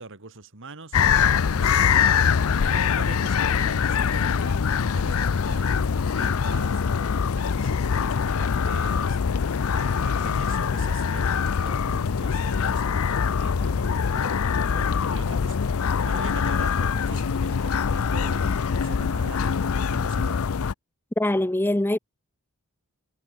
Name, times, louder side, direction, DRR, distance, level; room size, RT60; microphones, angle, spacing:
voice 1, 0.0-2.3 2.6-9.2 9.7-14.4 14.7-20.4, right 3 dB, 60° right, 2.5 m, -43 dB
sound 1, 0.9-20.7, left 6 dB, 65° left, 0.5 m, -23 dB
voice 2, 21.2-22.0, left 1 dB, 10° left, 0.5 m, -23 dB
head